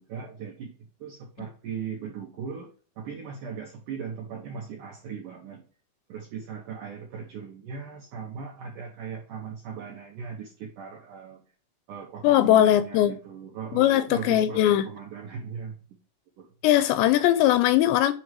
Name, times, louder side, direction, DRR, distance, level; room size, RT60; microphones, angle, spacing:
voice 1, 0.0-2.7 3.0-5.6 6.1-11.4 11.9-15.8 16.4-16.5, right 6 dB, 80° right, 1.9 m, -38 dB
voice 2, 12.2-13.1 13.7-14.9 16.6-18.1, left 12 dB, 85° left, 2.6 m, -20 dB
8.6 x 3.0 x 4.7 m
omnidirectional pair, 5.2 m